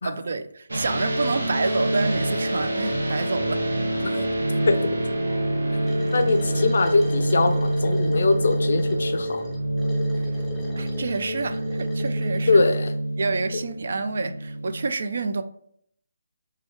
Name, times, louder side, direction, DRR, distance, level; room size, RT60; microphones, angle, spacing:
voice 1, 0.0-3.7 10.2-10.3 10.8-12.6 13.2-15.4, right 3 dB, 60° right, 0.3 m, -28 dB
sound 1, 0.7-14.9, right 1 dB, 85° right, 0.7 m, -26 dB
voice 2, 4.6-5.0 6.1-9.4 12.5-12.9, left 3 dB, 65° left, 0.4 m, -22 dB
sound 2, 5.9-13.0, left 4 dB, 5° left, 0.5 m, -39 dB
3.3 x 2.2 x 2.9 m
figure-of-eight pair, 160°, 0 cm